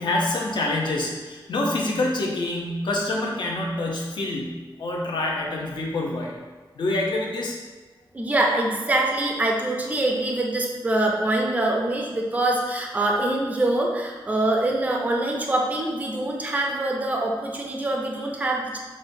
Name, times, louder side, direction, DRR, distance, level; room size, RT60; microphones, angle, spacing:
voice 1, 0.0-6.3 6.7-7.6, left 2 dB, 65° left, -2 dB, 0.7 m, -26 dB
voice 2, 8.1-18.8, right 1 dB, 15° right, 0 dB, 0.4 m, -24 dB
6.1 x 2.2 x 2.6 m, 1.3 s
wide cardioid pair, 170°, 9 cm